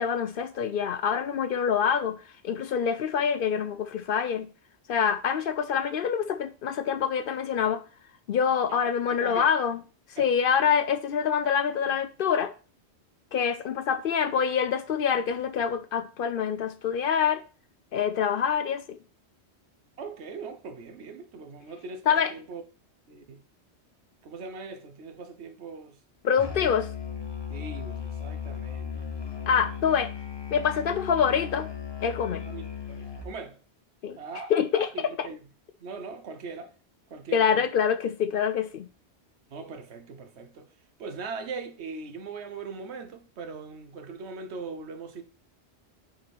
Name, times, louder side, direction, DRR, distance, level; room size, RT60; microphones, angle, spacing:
voice 1, 0.0-2.2 2.4-4.5 4.9-7.8 8.3-9.8 10.1-12.5 13.3-17.4 17.9-19.0 22.1-22.3 26.2-26.9 29.5-30.1 30.5-31.7 32.0-32.4 34.0-34.2 34.5-34.9 37.3-38.9, left 7 dB, 60° left, 0.6 m, -25 dB
voice 2, 8.7-9.5 10.2-10.4 20.0-22.6 23.1-23.4 24.2-26.0 27.5-29.1 32.5-33.6 34.2-35.4 35.8-36.7 37.1-37.7 39.5-40.7 41.0-45.2, right 4 dB, 75° right, 1.2 m, -40 dB
Musical instrument, 26.4-33.4, left 7 dB, 25° left, 0.9 m, -36 dB
5.7 x 4.0 x 6.0 m
omnidirectional pair, 1.1 m